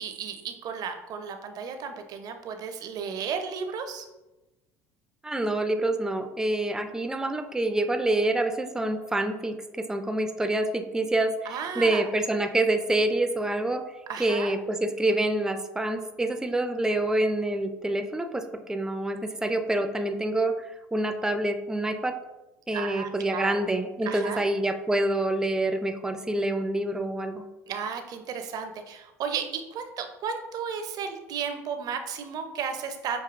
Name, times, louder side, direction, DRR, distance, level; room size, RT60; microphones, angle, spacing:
voice 1, 0.0-4.1 11.5-12.1 14.1-14.5 22.7-23.6 24.1-24.4 27.7-29.4 29.7-33.2, right 6 dB, 55° right, 7 dB, 0.6 m, -34 dB
voice 2, 5.2-13.8 14.2-22.2 22.7-27.4, right 1 dB, 5° right, 7 dB, 0.4 m, -27 dB
6.0 x 2.7 x 2.4 m, 1.0 s
hypercardioid pair, 70°, 8 cm